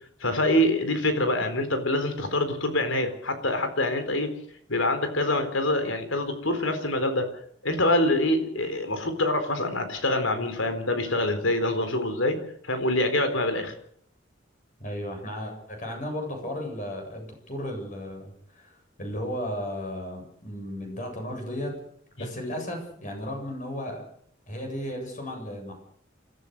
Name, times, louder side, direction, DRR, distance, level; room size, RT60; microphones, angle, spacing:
voice 1, 0.2-4.3 4.7-7.3 7.6-12.4 12.6-13.7 22.2-22.3, left 1 dB, 80° left, 8 dB, 4.1 m, -25 dB
voice 2, 14.8-21.7 22.2-24.0 24.5-25.7, equal, 40° left, 3 dB, 7.9 m, -34 dB
29.5 x 14.0 x 6.7 m, 0.64 s
head